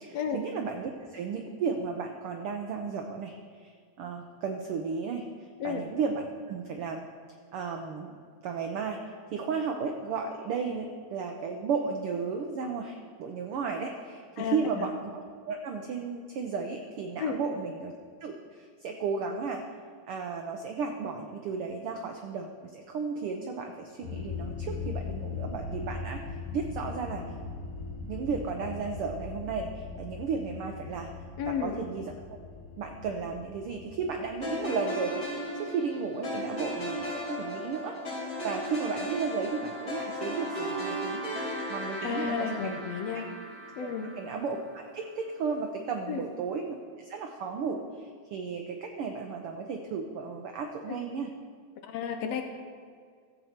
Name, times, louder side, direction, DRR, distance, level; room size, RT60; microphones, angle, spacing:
voice 1, 0.0-3.7 4.0-7.1 7.5-8.2 8.4-17.9 18.2-19.6 20.1-26.2 26.5-27.2 28.1-31.1 31.5-32.4 32.8-38.0 38.4-42.8 43.8-43.9 44.2-51.3, right 5 dB, 90° right, 4 dB, 1.2 m, -34 dB
voice 2, 14.4-14.9 17.2-17.4 31.4-31.8 42.0-43.3 43.8-44.1 46.1-46.3 50.9-51.0 51.8-52.4, left 6 dB, 70° left, 5 dB, 1.7 m, -32 dB
sound 1, 24.0-34.3, left 4 dB, 50° left, 2.7 m, -39 dB
sound 2, 34.4-44.7, equal, 30° left, 3.9 m, -36 dB
14.0 x 8.0 x 4.3 m, 2.1 s
omnidirectional pair, 3.4 m